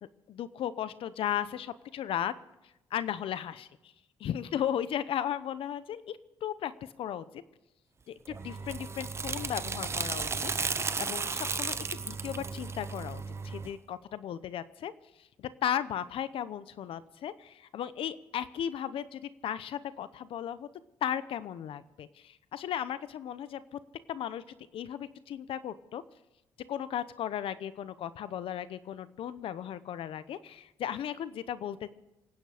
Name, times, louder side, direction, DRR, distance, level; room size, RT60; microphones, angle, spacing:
voice 1, 0.3-2.3 2.9-3.9 4.2-7.3 8.1-10.5 11.0-14.9 15.2-20.7 21.0-23.8 24.1-26.0 26.7-31.9, left 10 dB, 70° left, 15 dB, 0.8 m, -36 dB
sound 1, 8.3-13.7, right 4 dB, 30° right, 0.8 m, -34 dB
27.5 x 9.4 x 5.0 m, 0.97 s
cardioid pair, 105°, 10 cm